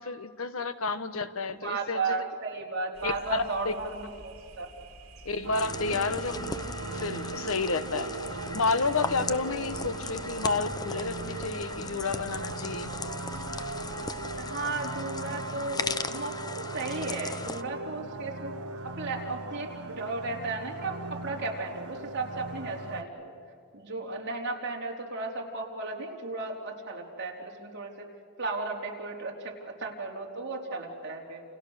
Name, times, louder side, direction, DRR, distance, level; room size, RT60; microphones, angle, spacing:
voice 1, 0.0-2.3 3.0-3.7 5.2-6.5 6.9-8.1 8.5-12.9, left 4 dB, 70° left, 11 dB, 1.2 m, -30 dB
voice 2, 1.6-4.7 14.4-18.5 18.8-23.3 23.7-28.1 28.4-31.4, right 3 dB, 55° right, -1 dB, 4.2 m, -35 dB
sound 1, 2.9-14.5, right 1 dB, 70° right, 3.4 m, -49 dB
sound 2, 5.4-23.0, right 3 dB, 85° right, 1.5 m, -38 dB
sound 3, 5.5-17.6, left 4 dB, 20° left, 0.7 m, -38 dB
29.5 x 29.5 x 6.7 m, 2.4 s
head